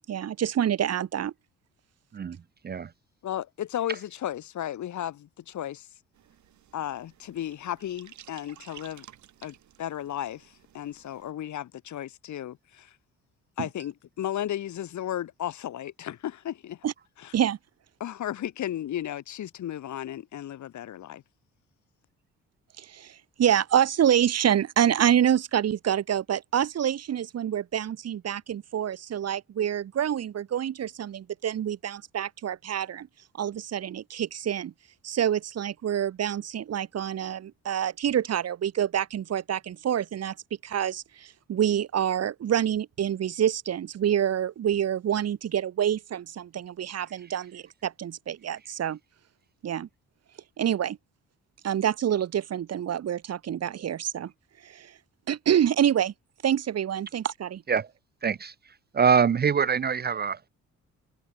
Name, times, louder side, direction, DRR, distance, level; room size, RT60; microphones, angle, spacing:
voice 1, 0.1-1.3 13.6-13.7 16.8-16.9 17.3-17.6 22.8-33.1 33.4-34.7 35.0-40.3 40.6-49.0 49.6-49.9 50.6-51.0 51.6-54.3 54.6-54.9 55.3-56.1 56.4-57.6, right 10 dB, 55° right, 1.5 m, -27 dB
voice 2, 3.2-5.9 6.7-9.1 9.4-13.0 13.6-16.9 17.2-17.3 18.0-21.2, left 11 dB, 70° left, 4.0 m, -34 dB
sound 1, 6.1-11.3, right 11 dB, 70° right, 6.8 m, -54 dB
voice 3, 58.2-58.5 58.9-60.5, right 6 dB, 35° right, 0.6 m, -24 dB
cardioid pair, 90°, 30 cm